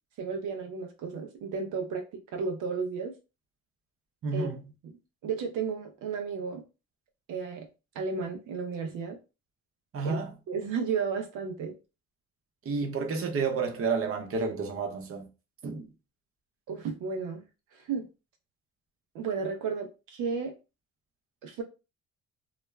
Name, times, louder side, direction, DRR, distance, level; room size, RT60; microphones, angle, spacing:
voice 1, 0.2-2.0 2.3-3.1 4.3-4.5 4.8-4.9 5.2-6.6 7.3-7.7 7.9-9.2 10.0-10.2 10.5-11.7 16.7-17.4 17.7-18.1 19.1-20.5 21.4-21.6, right 5 dB, 90° right, 0.6 m, -33 dB
voice 2, 4.2-4.6 9.9-10.3 12.6-15.3 15.6-15.9, right 4 dB, 45° right, 0.7 m, -30 dB
2.4 x 2.1 x 3.2 m
cardioid pair, 90°, 30 cm